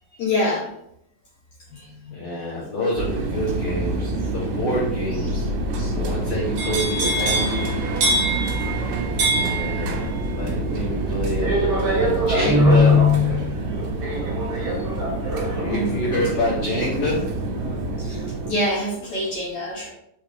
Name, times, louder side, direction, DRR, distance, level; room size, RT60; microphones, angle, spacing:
voice 1, 0.2-0.7 1.7-2.1 5.7-5.9 14.7-14.9 15.7-16.5 18.0-19.9, left 1 dB, 65° left, -8 dB, 1.7 m, -27 dB
voice 2, 2.1-5.5 5.9-7.7 9.3-13.1 15.5-17.2, left 1 dB, 90° left, -9 dB, 1.3 m, -27 dB
sound 1, 3.0-18.5, right 2 dB, 80° right, 2.5 m, -27 dB
sound 2, 6.6-18.5 18.9-19.3, right 2 dB, 60° right, 1.9 m, -27 dB
Guitar, 12.4-13.5, left 4 dB, 45° right, 1.2 m, -16 dB
5.9 x 3.5 x 2.5 m, 0.75 s
omnidirectional pair, 4.6 m